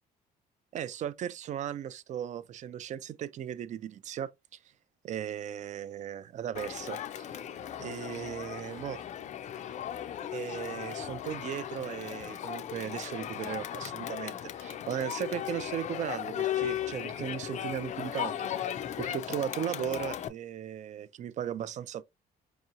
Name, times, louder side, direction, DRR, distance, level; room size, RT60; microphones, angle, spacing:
voice 1, 0.7-4.3 5.0-7.3 7.8-9.1 10.3-18.5 19.0-22.0, right 10 dB, 45° right, 0.4 m, -37 dB
Crowd, 6.5-20.3, left 10 dB, 45° left, 0.4 m, -37 dB
4.6 x 2.9 x 2.5 m
cardioid pair, 110°, 17 cm